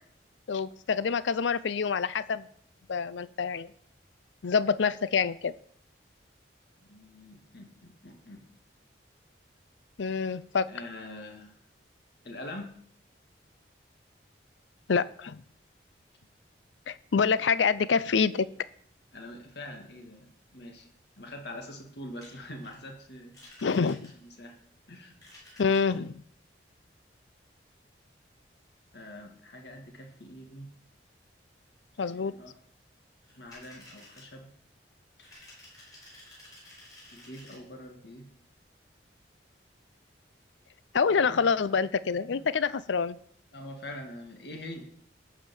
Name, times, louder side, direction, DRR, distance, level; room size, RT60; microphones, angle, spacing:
voice 1, 0.5-2.5 2.9-3.7 4.4-5.5 10.0-10.7 14.9-15.4 16.9-18.5 23.6-24.1 25.6-26.2 32.0-32.3 40.9-43.2, left 5 dB, 80° left, 17 dB, 0.5 m, -26 dB
voice 2, 6.8-8.5 10.7-11.5 12.2-12.8 19.1-20.3 20.5-20.9 21.2-23.4 23.9-24.6 24.9-25.2 28.9-30.8 32.1-32.5 33.3-34.5 37.1-38.3 41.1-41.7 42.0-42.5 43.5-44.9, left 1 dB, 65° left, 3 dB, 2.0 m, -44 dB
sound 1, 22.2-22.8 23.3-24.4 25.1-26.0 33.2-34.3 35.2-37.5, left 1 dB, 20° left, 5.3 m, -52 dB
12.0 x 5.2 x 7.1 m, 0.63 s
head